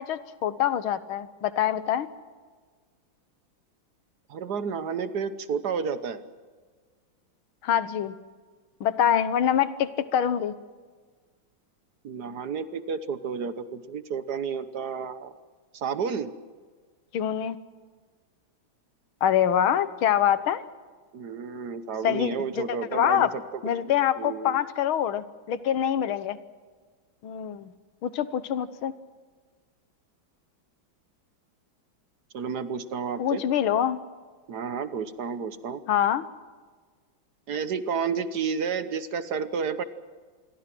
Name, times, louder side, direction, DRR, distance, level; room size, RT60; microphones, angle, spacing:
voice 1, 0.0-2.1 7.6-8.2 8.8-10.6 17.1-17.6 19.2-20.6 22.0-23.3 23.6-26.4 27.2-27.7 28.0-28.9 33.2-34.0 35.9-36.2, left 9 dB, 90° left, 14 dB, 1.9 m, -25 dB
voice 2, 4.3-6.2 12.0-15.3 15.7-16.3 21.1-24.6 32.3-33.4 34.5-35.8 37.5-39.8, right 6 dB, 55° right, 12 dB, 1.5 m, -31 dB
27.5 x 22.5 x 6.1 m, 1.5 s
omnidirectional pair, 2.2 m